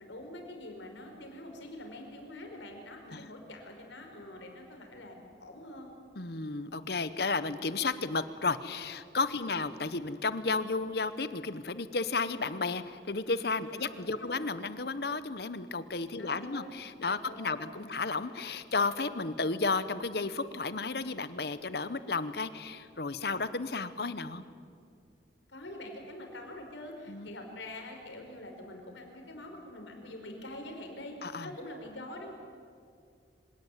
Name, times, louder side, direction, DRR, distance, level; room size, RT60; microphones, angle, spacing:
voice 1, 0.0-5.9 9.4-9.6 13.6-14.4 16.2-18.0 25.5-31.1 31.4-32.3, left 1 dB, 90° left, 3 dB, 4.9 m, -45 dB
voice 2, 6.2-24.4 27.1-27.3 31.2-31.5, left 3 dB, 60° left, 13 dB, 1.0 m, -33 dB
25.5 x 17.5 x 9.2 m, 2.2 s
head